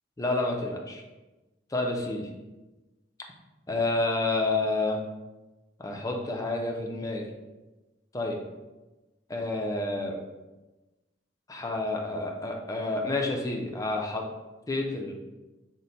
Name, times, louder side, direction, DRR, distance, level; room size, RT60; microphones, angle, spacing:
voice 1, 0.2-1.0 1.7-2.3 3.7-5.0 5.8-7.3 8.1-8.4 9.3-10.2 11.5-14.2 14.7-15.1, left 2 dB, 20° left, 1 dB, 0.5 m, -29 dB
3.9 x 2.1 x 4.2 m, 1.1 s
head